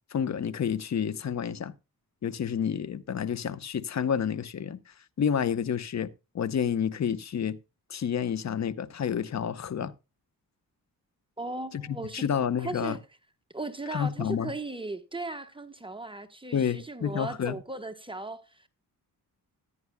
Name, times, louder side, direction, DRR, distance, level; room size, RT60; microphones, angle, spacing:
voice 1, 0.1-1.7 2.2-7.6 7.9-9.9 11.7-13.0 13.9-14.5 16.5-17.6, left 8 dB, 45° left, 0.9 m, -29 dB
voice 2, 11.4-12.2 12.6-13.0 13.5-18.7, right 2 dB, 15° right, 1.0 m, -37 dB
14.5 x 9.7 x 2.2 m
cardioid pair, 90°, 37 cm